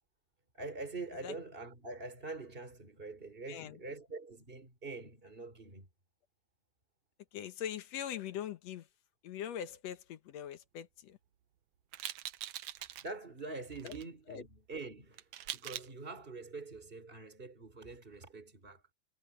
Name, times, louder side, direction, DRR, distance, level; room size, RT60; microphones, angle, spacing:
voice 1, 0.5-5.9 13.0-18.9, right 3 dB, 15° right, 4.7 m, -45 dB
voice 2, 3.5-3.8 7.3-8.9 9.2-11.2 13.8-14.0 14.3-14.4, left 10 dB, 70° left, 2.0 m, -42 dB
sound 1, 11.9-13.1 13.7-14.0 15.1-15.9, right 13 dB, 70° right, 1.9 m, -43 dB
omnidirectional pair, 3.5 m